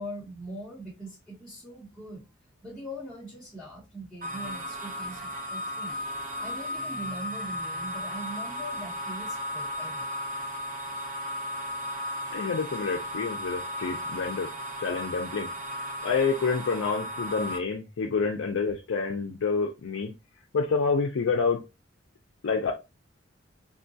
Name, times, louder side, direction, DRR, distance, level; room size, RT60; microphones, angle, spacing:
voice 1, 0.0-2.2 2.6-6.0 6.4-10.1, right 1 dB, ahead, 1.0 m, -41 dB
sound 1, 4.2-17.6, left 1 dB, 40° right, 0.7 m, -35 dB
voice 2, 12.3-14.5 14.8-15.5 16.0-20.1 20.5-21.6 22.4-22.7, left 5 dB, 75° left, 0.4 m, -28 dB
3.7 x 2.3 x 2.6 m
head